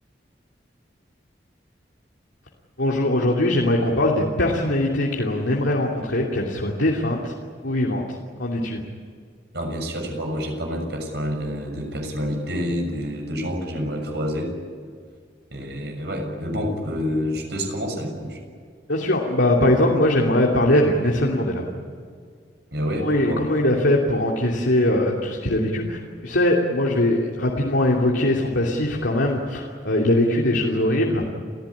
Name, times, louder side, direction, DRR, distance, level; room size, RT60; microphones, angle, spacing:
voice 1, 2.8-7.3 7.6-8.0 8.4-8.8 18.9-21.6 22.9-31.3, left 1 dB, 85° left, -2 dB, 2.9 m, -21 dB
voice 2, 9.5-14.5 15.5-18.4 22.7-23.4, equal, 65° right, 3 dB, 6.7 m, -28 dB
30.0 x 15.5 x 9.9 m, 2.1 s
head